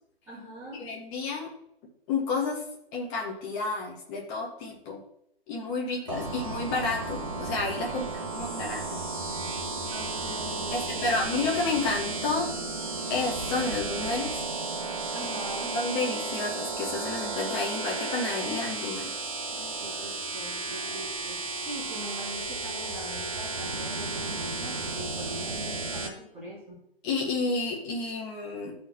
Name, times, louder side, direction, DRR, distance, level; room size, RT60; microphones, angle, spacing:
voice 1, 0.3-0.9 5.8-6.3 7.9-8.6 9.9-11.6 15.1-15.8 19.5-26.8, right 1 dB, 10° right, -11 dB, 1.9 m, -42 dB
voice 2, 0.8-1.5 2.1-2.6 2.9-5.0 5.5-9.0 10.7-12.5 13.1-14.4 15.7-19.1 27.0-28.7, left 3 dB, 15° left, -1 dB, 0.8 m, -30 dB
sound 1, 6.1-26.1, right 3 dB, 35° right, 0.7 m, -33 dB
13.0 x 4.3 x 2.6 m, 0.75 s
figure-of-eight pair, 135°, 31 cm